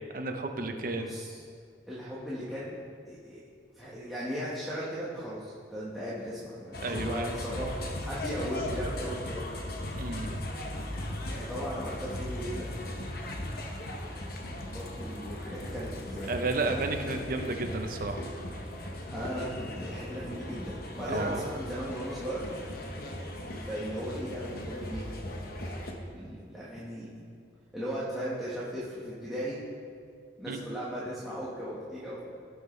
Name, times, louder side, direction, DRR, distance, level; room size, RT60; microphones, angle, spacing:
voice 1, 0.1-1.1 6.8-7.3 10.0-10.4 16.3-18.3 21.1-21.4 30.5-30.6, right 2 dB, 50° right, 5 dB, 0.8 m, -32 dB
voice 2, 0.9-1.4 1.9-2.8 3.0-3.4 3.8-5.4 5.7-9.6 11.3-12.7 14.2-14.4 14.7-16.5 19.1-22.5 23.6-25.1 26.1-27.1 27.7-29.6 30.4-32.3, equal, ahead, -10 dB, 1.4 m, -37 dB
sound 1, 6.7-25.9, left 1 dB, 55° left, 1.0 m, -38 dB
17.0 x 6.4 x 3.2 m, 2.2 s
head